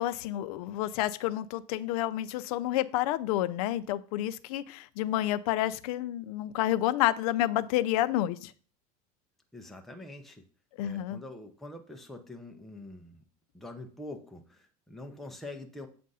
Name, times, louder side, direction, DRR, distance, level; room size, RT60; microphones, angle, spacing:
voice 1, 0.0-8.5 10.8-11.2, left 14 dB, 75° left, 14 dB, 0.4 m, -29 dB
voice 2, 9.5-10.4 10.8-13.2 13.5-15.9, left 2 dB, ahead, 4 dB, 0.6 m, -45 dB
7.4 x 2.6 x 5.4 m, 0.42 s
supercardioid pair, 125°, 19 cm